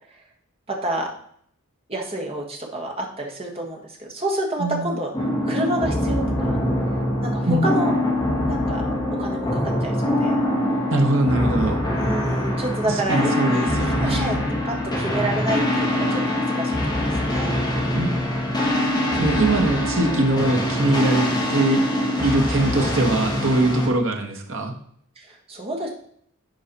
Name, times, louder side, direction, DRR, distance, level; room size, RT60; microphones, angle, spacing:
voice 1, 0.7-1.1 1.9-5.1 5.4-6.5 7.2-7.9 8.5-10.4 11.9-14.4 14.6-17.6 25.2-25.9, right 1 dB, 25° right, 0 dB, 1.5 m, -29 dB
sound 1, 5.1-23.9, left 1 dB, 20° left, 1.7 m, -23 dB
voice 2, 10.9-11.8 12.9-14.4 17.9-18.6 19.2-21.8 22.2-24.7, right 1 dB, 60° right, 3 dB, 1.3 m, -22 dB
10.5 x 4.7 x 4.1 m, 0.64 s
head